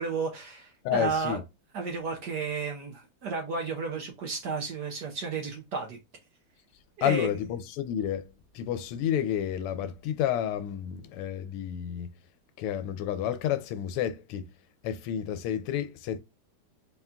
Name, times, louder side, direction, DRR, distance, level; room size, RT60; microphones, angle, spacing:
voice 1, 0.0-1.4 1.7-6.0 7.0-7.3, right 4 dB, 65° right, 1.1 m, -32 dB
voice 2, 0.8-1.4 7.0-8.2 8.5-12.1 12.6-14.5 14.8-16.2, left 10 dB, 85° left, 1.5 m, -30 dB
4.3 x 2.3 x 3.6 m
omnidirectional pair, 2.4 m